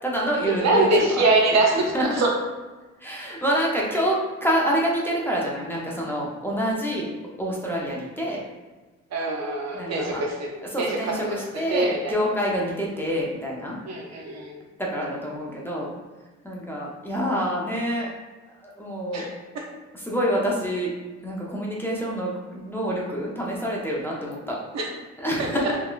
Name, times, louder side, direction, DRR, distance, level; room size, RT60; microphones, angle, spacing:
voice 1, 0.0-1.2 1.7-2.2 3.0-7.1 7.4-8.4 9.7-10.2 10.7-13.7 14.8-15.9 16.4-18.1 18.6-19.3 19.9-20.9 21.2-24.5 25.2-25.8, equal, 5° left, -4 dB, 0.6 m, -27 dB
voice 2, 0.6-2.3 9.1-12.2 13.9-14.6 19.1-19.7 24.7-24.9 25.4-25.5, right 2 dB, 60° right, 0 dB, 0.7 m, -24 dB
3.8 x 2.2 x 2.3 m, 1.2 s
cardioid pair, 90°, 30 cm